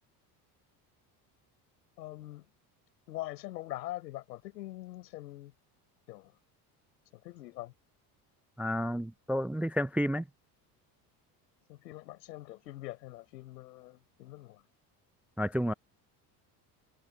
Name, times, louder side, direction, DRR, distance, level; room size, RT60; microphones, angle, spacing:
voice 1, 2.0-2.5 3.1-5.5 6.1-6.3 7.1-7.7 11.7-14.6, left 16 dB, 90° left, 5.4 m, -43 dB
voice 2, 8.6-10.2 15.4-15.7, equal, 5° right, 0.3 m, -30 dB
hypercardioid pair, 80°, 48 cm